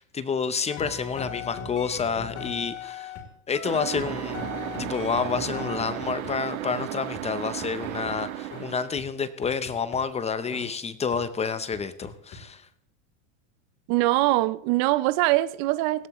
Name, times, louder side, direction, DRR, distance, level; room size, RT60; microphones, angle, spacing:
voice 1, 0.0-3.1 3.5-4.5 4.8-12.7, left 5 dB, 15° left, 0.6 m, -29 dB
sound 1, 0.7-3.3 3.5-6.3 6.7-6.8 7.1-7.2 7.6-8.1 8.5-8.7 9.0-9.1 9.4-10.0 10.5-10.7 11.1-11.2 11.7-12.4, left 6 dB, 40° left, 3.3 m, -38 dB
sound 2, 3.6-9.0, right 16 dB, 85° right, 0.7 m, -35 dB
voice 2, 13.9-16.1, right 17 dB, 50° right, 0.6 m, -23 dB
18.0 x 16.5 x 3.0 m
supercardioid pair, 130°, 41 cm